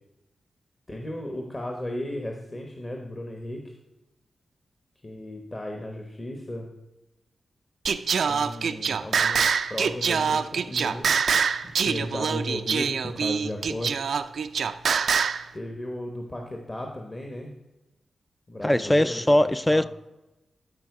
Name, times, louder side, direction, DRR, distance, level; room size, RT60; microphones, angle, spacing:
voice 1, 0.9-3.7 5.0-6.7 8.3-11.3 11.6-14.1 15.5-17.5 18.5-19.4 19.7-19.8, left 1 dB, 30° left, 2 dB, 1.1 m, -35 dB
Singing, 7.9-15.4, right 6 dB, 80° right, 0.4 m, -25 dB
voice 2, 18.6-19.8, left 1 dB, 10° left, 13 dB, 0.3 m, -20 dB
12.5 x 4.6 x 4.8 m, 0.98 s
cardioid pair, 85°, 0 cm